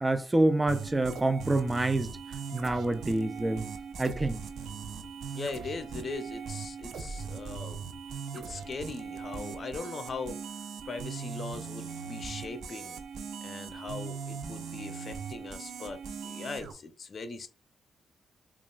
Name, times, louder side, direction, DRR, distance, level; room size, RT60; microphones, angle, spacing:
voice 1, 0.0-2.1 2.5-3.7 4.0-4.4, right 2 dB, 20° right, 0.4 m, -27 dB
sound 1, 0.7-16.7, right 6 dB, 70° right, 0.5 m, -40 dB
voice 2, 5.3-7.8 8.3-10.4 10.9-13.0 13.4-17.5, left 4 dB, 55° left, 0.5 m, -40 dB
5.0 x 2.4 x 2.3 m
supercardioid pair, 50°, 0 cm